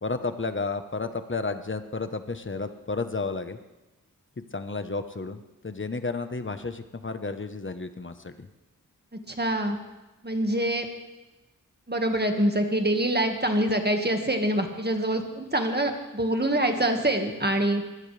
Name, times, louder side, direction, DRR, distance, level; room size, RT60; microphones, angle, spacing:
voice 1, 0.0-3.6 4.4-8.5, left 3 dB, 35° left, 9 dB, 1.1 m, -32 dB
voice 2, 9.1-9.8 10.2-10.9 11.9-17.8, right 1 dB, 30° right, 4 dB, 1.7 m, -25 dB
23.0 x 16.0 x 3.4 m, 1.1 s
wide cardioid pair, 75°, 34 cm